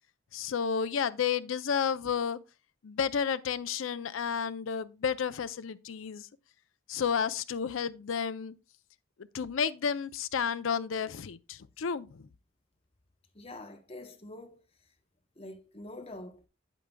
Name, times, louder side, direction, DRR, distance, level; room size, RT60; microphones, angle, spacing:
voice 1, 0.3-2.4 2.8-6.3 6.9-8.5 9.3-12.3, left 7 dB, 85° left, 0.5 m, -31 dB
voice 2, 13.3-14.6 15.4-16.4, left 1 dB, 30° left, 0.9 m, -45 dB
8.8 x 8.3 x 2.2 m
head